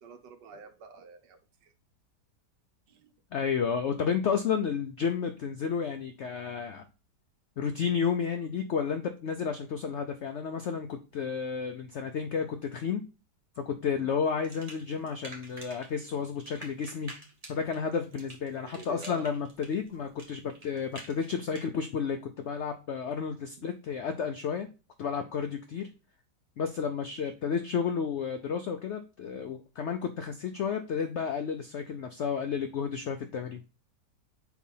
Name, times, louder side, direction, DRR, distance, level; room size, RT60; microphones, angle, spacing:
voice 1, 0.0-1.7 2.9-3.1 13.8-14.1 18.6-19.3 27.2-27.3, right 4 dB, 80° right, 5 dB, 1.6 m, -48 dB
voice 2, 3.3-6.8 7.6-13.0 13.6-17.1 17.5-24.7 25.0-25.9 26.6-33.7, left 6 dB, 90° left, 7 dB, 0.6 m, -32 dB
sound 1, 14.4-15.9 16.1-21.7, right 1 dB, 25° right, 1.4 m, -47 dB
4.7 x 4.0 x 5.4 m, 0.32 s
omnidirectional pair, 1.8 m